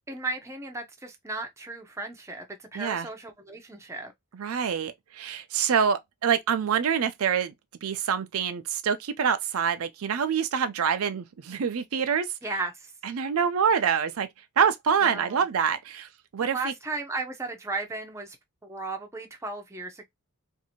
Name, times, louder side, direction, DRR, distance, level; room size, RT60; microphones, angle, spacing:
voice 1, 0.1-4.1 12.4-12.9 15.0-15.4 16.4-18.4 18.6-20.0, right 3 dB, 15° right, 0.6 m, -35 dB
voice 2, 2.7-3.1 4.3-7.5 7.8-12.3 13.0-14.3 14.6-16.7, right 7 dB, 70° right, 0.4 m, -26 dB
2.7 x 2.5 x 2.8 m
head